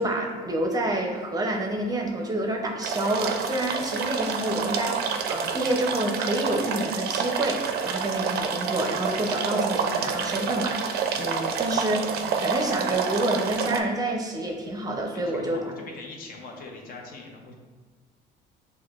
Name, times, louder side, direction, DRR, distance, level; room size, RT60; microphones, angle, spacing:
voice 1, 0.0-15.6, right 1 dB, 20° right, 1 dB, 0.6 m, -28 dB
sound 1, 2.8-13.8, right 6 dB, 70° right, 0.4 m, -28 dB
voice 2, 15.1-17.6, left 3 dB, 60° left, 0 dB, 0.8 m, -42 dB
6.4 x 2.2 x 2.4 m, 1.4 s
cardioid pair, 110°, 17 cm